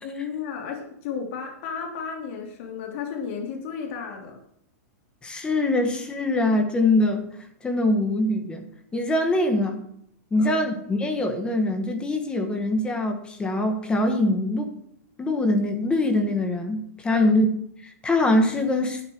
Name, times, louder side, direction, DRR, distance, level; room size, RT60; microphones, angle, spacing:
voice 1, 0.0-4.4 10.4-10.5 17.1-17.2, left 6 dB, 50° left, 1 dB, 3.1 m, -33 dB
voice 2, 5.2-7.2 7.6-8.7 8.9-9.8 10.3-14.7 15.2-17.5 17.8-19.0, left 2 dB, 10° left, 6 dB, 1.6 m, -23 dB
12.0 x 9.5 x 4.7 m, 0.71 s
supercardioid pair, 155°, 9 cm